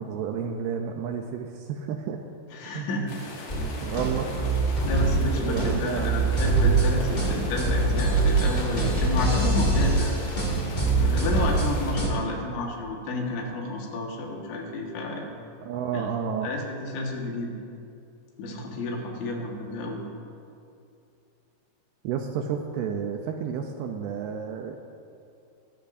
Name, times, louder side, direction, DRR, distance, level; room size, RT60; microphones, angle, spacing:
voice 1, 0.0-2.2 2.7-2.9 3.8-4.3 5.5-6.3 15.6-16.5 22.0-24.8, right 7 dB, 85° right, 3 dB, 2.3 m, -31 dB
voice 2, 2.5-3.1 4.9-10.2 10.9-15.3 15.9-16.1 16.4-17.6 18.4-20.0, left 2 dB, 80° left, 0 dB, 4.0 m, -31 dB
sound 1, 3.1-12.0, left 3 dB, 65° left, 3.9 m, -40 dB
sound 2, 3.5-12.1, right 3 dB, 25° left, 0.9 m, -24 dB
21.5 x 13.5 x 2.6 m, 2.6 s
omnidirectional pair, 5.2 m